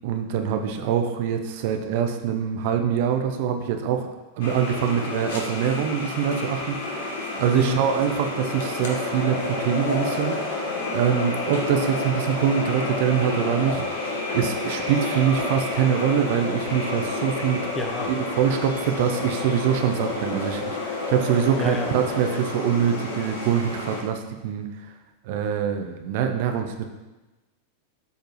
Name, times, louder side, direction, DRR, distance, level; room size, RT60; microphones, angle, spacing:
voice 1, 0.0-4.1 4.4-10.6 10.9-17.7 18.1-24.7 25.2-26.9, right 8 dB, 50° right, 5 dB, 0.6 m, -24 dB
sound 1, 4.4-24.0, left 3 dB, 55° left, 1.3 m, -30 dB
voice 2, 17.7-18.1 21.6-21.9, left 2 dB, 20° left, 3 dB, 1.0 m, -29 dB
12.0 x 4.5 x 3.1 m, 1.1 s
figure-of-eight pair, 90°, 0 cm